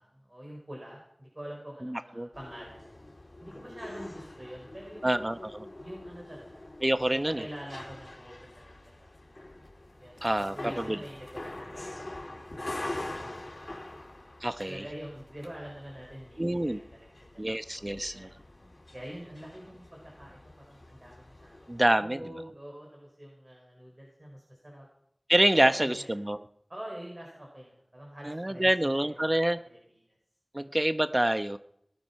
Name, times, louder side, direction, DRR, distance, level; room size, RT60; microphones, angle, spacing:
voice 1, 0.0-2.9 3.4-5.3 5.8-6.7 7.1-9.1 10.0-13.8 14.6-17.1 17.7-18.3 18.9-21.7 22.0-24.9 25.5-26.1 26.7-30.2 30.6-30.7, equal, 45° right, -2 dB, 5.0 m, -46 dB
voice 2, 1.8-2.3 5.0-5.5 6.8-7.5 10.2-11.0 14.4-14.8 16.4-16.8 17.4-18.3 21.7-22.2 25.3-26.4 28.2-29.6 30.5-31.6, right 1 dB, 30° right, 11 dB, 0.9 m, -27 dB
sound 1, 2.3-21.9, left 1 dB, 65° left, 2.9 m, -44 dB
19.0 x 12.0 x 5.8 m, 0.74 s
wide cardioid pair, 45°, 0 cm